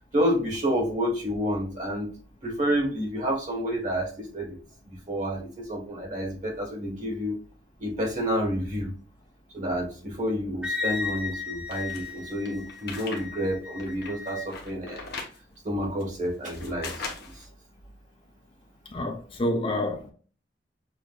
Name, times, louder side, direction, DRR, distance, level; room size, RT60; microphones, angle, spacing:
voice 1, 0.1-2.1 2.4-4.6 4.9-7.4 7.8-8.9 9.5-15.1 15.6-17.1, equal, 45° right, 1.5 m, -29 dB
Wind instrument woodwind instrument, 10.6-14.5, left 4 dB, 5° right, 0.7 m, -35 dB
sound 1, 11.7-13.2 13.6-15.4 16.0-17.5, left 4 dB, 60° left, 1.0 m, -39 dB
voice 2, 18.9-20.1, left 1 dB, 30° left, 0.6 m, -28 dB
6.2 x 2.6 x 2.4 m
head